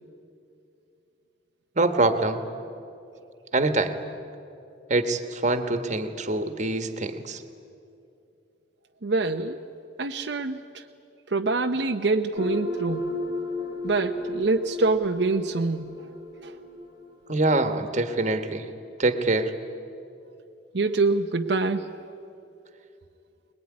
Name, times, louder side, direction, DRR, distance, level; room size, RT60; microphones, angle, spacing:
voice 1, 1.7-2.4 3.5-3.9 4.9-7.4 17.3-18.7 19.0-19.5, right 2 dB, 40° right, 8 dB, 1.5 m, -24 dB
voice 2, 9.0-9.6 10.0-10.6 11.3-13.1 13.8-16.0 16.4-16.5 20.7-21.9, right 3 dB, 70° right, 4 dB, 0.8 m, -25 dB
sound 1, 12.4-17.7, left 2 dB, 55° left, 3.0 m, -34 dB
24.5 x 20.5 x 9.8 m, 2.7 s
head